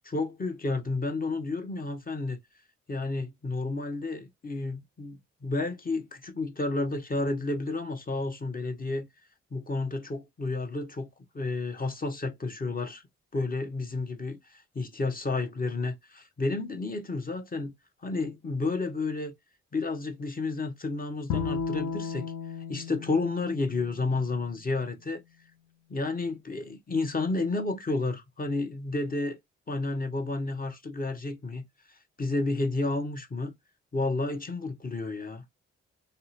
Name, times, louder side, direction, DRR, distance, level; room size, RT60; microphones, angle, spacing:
voice 1, 0.0-2.4 2.9-9.1 9.5-11.1 11.3-13.0 13.3-17.7 18.0-19.3 19.7-22.3 22.7-25.2 25.9-29.4 29.7-31.6 32.2-33.5 33.9-35.4, left 3 dB, 30° left, 0.8 m, -31 dB
Bowed string instrument, 21.3-24.6, left 6 dB, 65° left, 0.6 m, -35 dB
2.7 x 2.1 x 4.0 m
supercardioid pair, 50°, 30 cm